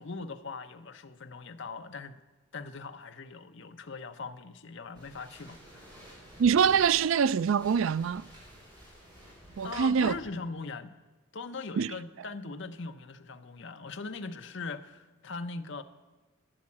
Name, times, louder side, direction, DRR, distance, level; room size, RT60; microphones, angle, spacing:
voice 1, 0.0-2.2 2.5-6.0 9.6-10.9 11.3-15.8, left 4 dB, 60° left, 0.7 m, -40 dB
sound 1, 4.9-10.3, equal, 20° right, 4.7 m, -51 dB
voice 2, 6.4-8.3 9.6-10.2 11.8-11.9, right 7 dB, 70° right, 0.3 m, -24 dB
12.5 x 8.6 x 8.4 m
head